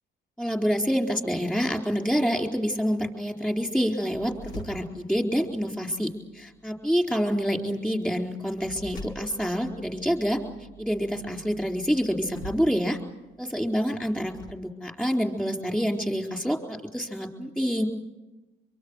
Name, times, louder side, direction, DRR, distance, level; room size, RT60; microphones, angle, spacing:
voice 1, 0.4-10.4 10.8-13.0 13.4-17.9, equal, 5° left, 3 dB, 4.3 m, -27 dB
sound 1, 4.1-14.5, equal, 85° left, 3.4 m, -47 dB
24.5 x 23.5 x 6.5 m, 1.1 s
cardioid pair, 90°, 20 cm